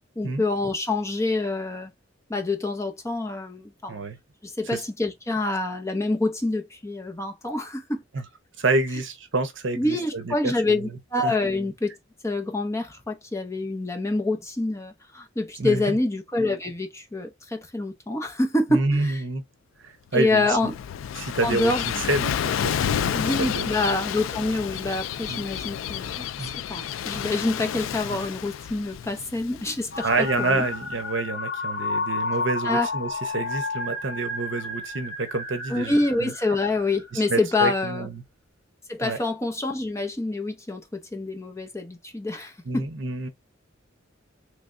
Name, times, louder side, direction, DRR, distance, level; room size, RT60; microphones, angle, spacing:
voice 1, 0.2-1.9 2.3-4.0 4.4-8.0 9.8-11.9 12.2-19.2 20.1-20.7 21.4-21.8 23.1-30.7 32.6-32.9 35.7-38.1 38.9-42.9, left 2 dB, 15° left, 0.8 m, -26 dB
voice 2, 8.6-11.4 15.6-16.0 18.7-19.4 19.8-20.7 21.2-23.7 25.3-25.4 26.4-26.5 30.0-36.3 37.1-38.2 39.0-39.2 42.6-43.3, right 3 dB, 65° right, 0.8 m, -28 dB
Gull seagull / Waves surf, 20.3-30.9, left 9 dB, 80° left, 0.3 m, -30 dB
sound 1, 29.9-37.2, left 3 dB, 60° left, 2.0 m, -31 dB
3.4 x 3.3 x 2.5 m
head